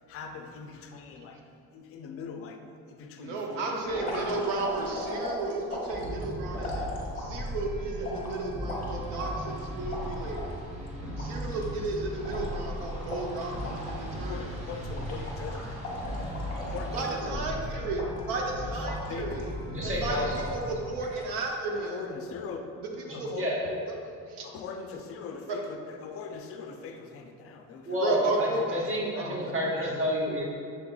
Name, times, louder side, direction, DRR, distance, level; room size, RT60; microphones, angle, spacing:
voice 1, 0.1-1.4 1.7-4.7 7.1-7.2 11.2-11.3 14.1-16.2 16.5-17.9 18.7-18.8 19.1-19.4 19.8-20.2 21.7-22.7 23.1-23.7 24.4-28.3, left 5 dB, 45° left, 5 dB, 0.4 m, -42 dB
voice 2, 3.2-6.9 7.2-10.6 11.2-14.5 16.9-19.5 19.8-22.0 22.8-23.3 24.3-24.5 25.5-25.6 28.0-28.9 29.2-29.5, right 3 dB, 90° right, 1 dB, 0.8 m, -33 dB
sound 1, 3.9-7.5 8.0-10.5 10.9-11.0 11.2-14.1 14.4-14.6 14.9-17.4 17.9-18.5 18.8-19.5 20.0-20.6 21.0-21.5, left 2 dB, 25° left, 1.0 m, -39 dB
sound 2, 5.9-20.9, equal, 70° right, 1.3 m, -37 dB
sound 3, 8.8-17.1, right 1 dB, 20° right, 0.5 m, -49 dB
voice 3, 19.6-20.5 23.1-23.6 27.9-30.4, equal, 40° right, -4 dB, 1.1 m, -30 dB
6.4 x 3.5 x 2.3 m, 2.3 s
cardioid pair, 145°, 34 cm